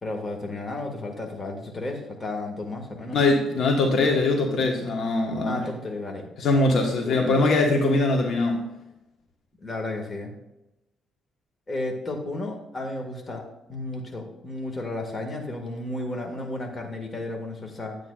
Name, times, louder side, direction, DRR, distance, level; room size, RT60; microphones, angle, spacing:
voice 1, 0.0-3.2 5.4-6.3 7.0-7.4 9.6-10.3 11.7-13.4 13.7-18.0, left 2 dB, 30° left, 2 dB, 2.0 m, -33 dB
voice 2, 3.1-5.6 6.4-8.6, left 2 dB, 65° left, 2 dB, 1.4 m, -22 dB
10.5 x 9.2 x 2.5 m, 0.94 s
cardioid pair, 90°, 0 cm